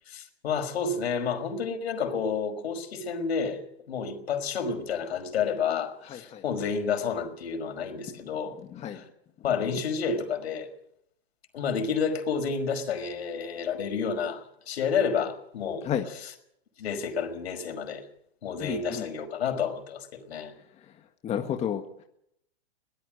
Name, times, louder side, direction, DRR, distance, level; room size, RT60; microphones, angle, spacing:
voice 1, 0.1-8.6 8.9-9.1 9.4-10.7 11.5-16.3 16.8-18.1 18.4-20.5, left 6 dB, 75° left, 5.3 m, -30 dB
voice 2, 6.1-6.4 8.7-9.0 15.8-16.0 18.6-19.1 21.2-22.0, left 9 dB, 20° left, 1.7 m, -31 dB
23.0 x 19.0 x 6.4 m
hypercardioid pair, 145°, 32 cm